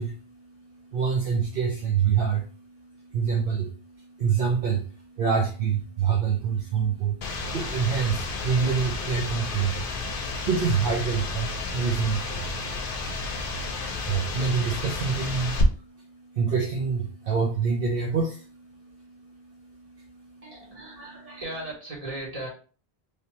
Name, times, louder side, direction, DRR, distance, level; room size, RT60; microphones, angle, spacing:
voice 1, 0.0-20.4, right 6 dB, 65° right, -1 dB, 0.8 m, -27 dB
sound 1, 7.2-15.6, left 3 dB, 60° left, 0.8 m, -32 dB
voice 2, 20.4-22.5, right 1 dB, 35° right, -4 dB, 1.6 m, -37 dB
3.3 x 2.7 x 2.9 m, 0.38 s
omnidirectional pair, 1.1 m